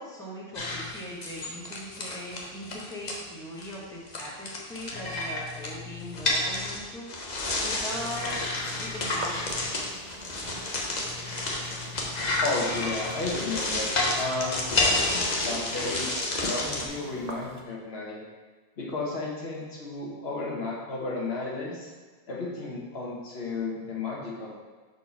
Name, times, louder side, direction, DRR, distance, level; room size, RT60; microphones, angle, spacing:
voice 1, 0.0-8.4 8.8-9.6, equal, 5° left, -6 dB, 1.2 m, -40 dB
sound 1, 0.5-3.2 3.6-3.8 4.1-16.9, left 2 dB, 45° left, 0.9 m, -30 dB
sound 2, 7.8-17.6, right 1 dB, 45° right, 0.7 m, -45 dB
voice 2, 12.4-16.1 16.4-18.2 18.8-21.9 22.3-24.5, left 3 dB, 75° left, -3 dB, 1.5 m, -33 dB
4.5 x 4.1 x 5.8 m, 1.4 s
omnidirectional pair, 1.0 m